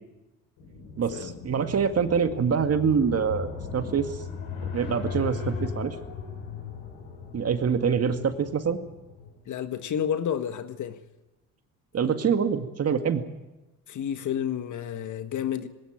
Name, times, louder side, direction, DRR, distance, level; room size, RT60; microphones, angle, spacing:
sound 1, 0.6-9.4, left 5 dB, 80° left, 8.0 m, -37 dB
voice 1, 1.0-4.1 4.7-6.0 7.3-8.8 11.9-13.2, right 6 dB, 40° right, 2.1 m, -25 dB
voice 2, 9.5-11.0 13.9-15.7, left 9 dB, 55° left, 1.6 m, -30 dB
19.5 x 17.5 x 8.9 m
supercardioid pair, 75°, 36 cm